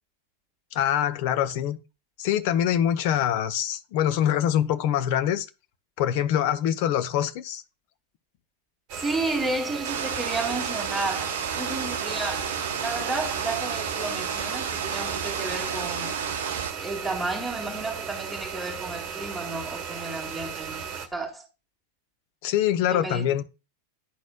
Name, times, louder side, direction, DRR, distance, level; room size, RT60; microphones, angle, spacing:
voice 1, 0.7-1.8 2.2-5.5 6.0-7.6 22.4-23.4, left 10 dB, 45° left, 0.7 m, -24 dB
sound 1, 8.9-21.1, right 6 dB, 40° right, 1.2 m, -36 dB
voice 2, 9.0-16.1 16.8-20.8 21.1-21.5 22.9-23.3, right 2 dB, 5° right, 2.1 m, -32 dB
sound 2, 9.8-16.7, right 7 dB, 60° right, 0.7 m, -31 dB
11.5 x 4.1 x 2.3 m
figure-of-eight pair, 90°, 0 cm